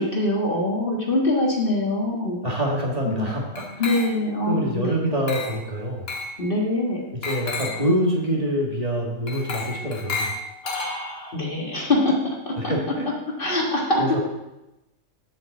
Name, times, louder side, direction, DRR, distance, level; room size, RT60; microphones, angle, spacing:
voice 1, 0.0-2.4 3.0-3.3 3.8-5.1 6.4-7.0 10.6-12.7 13.4-14.2, left 1 dB, 40° left, -2 dB, 1.7 m, -24 dB
voice 2, 2.4-3.6 4.5-6.1 7.1-10.3 12.6-13.1 14.0-14.2, equal, 30° right, -3 dB, 1.6 m, -25 dB
Glass, 3.6-4.4 5.3-5.7 6.1-6.4 7.2-7.9 9.3-11.3, left 3 dB, 90° left, 1.9 m, -32 dB
7.5 x 5.3 x 7.2 m, 0.95 s
omnidirectional pair, 1.5 m